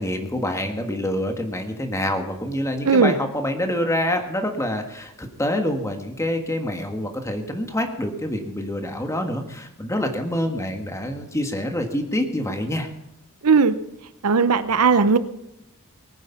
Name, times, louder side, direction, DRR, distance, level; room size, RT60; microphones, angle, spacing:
voice 1, 0.0-12.9, left 1 dB, 15° left, 5 dB, 1.6 m, -26 dB
voice 2, 13.4-13.7 14.2-15.2, right 5 dB, 80° right, 13 dB, 0.8 m, -17 dB
19.5 x 9.3 x 5.8 m, 0.88 s
head